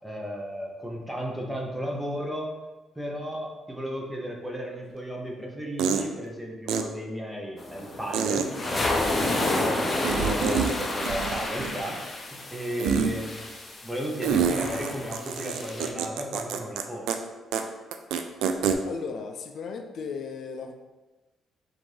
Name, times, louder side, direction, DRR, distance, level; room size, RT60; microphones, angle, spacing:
voice 1, 0.0-2.5 3.0-12.0 12.3-13.5 13.8-17.1, equal, 5° right, 0 dB, 0.8 m, -34 dB
sound 1, 4.9-5.0 5.8-6.1 6.7-6.8 8.1-8.5 10.0-10.7 11.0-11.9 12.8-13.1 14.2-16.8 17.1-17.2 17.5-17.6 17.9-18.8, right 7 dB, 90° right, 0.3 m, -26 dB
sound 2, 7.6-15.9, left 2 dB, 30° left, 0.7 m, -30 dB
voice 2, 18.8-20.7, left 5 dB, 65° left, 5 dB, 0.3 m, -35 dB
3.6 x 2.6 x 4.6 m, 1.2 s
cardioid pair, 90°, 0 cm